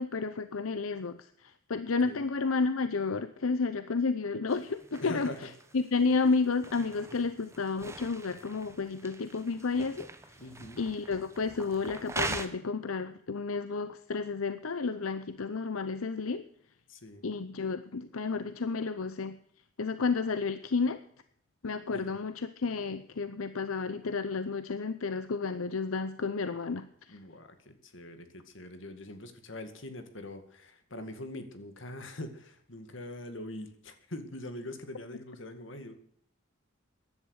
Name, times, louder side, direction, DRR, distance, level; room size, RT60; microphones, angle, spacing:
voice 1, 0.0-5.3 5.7-10.1 10.8-16.4 17.2-19.4 19.8-21.0 21.6-27.2, left 4 dB, 85° left, 11 dB, 0.7 m, -31 dB
sound 1, 4.5-12.5, right 3 dB, 15° right, 1.1 m, -42 dB
voice 2, 5.0-5.5 10.4-10.8 16.9-17.2 21.9-22.1 27.1-35.9, left 1 dB, 65° left, 8 dB, 2.1 m, -43 dB
15.5 x 10.5 x 6.5 m, 0.67 s
head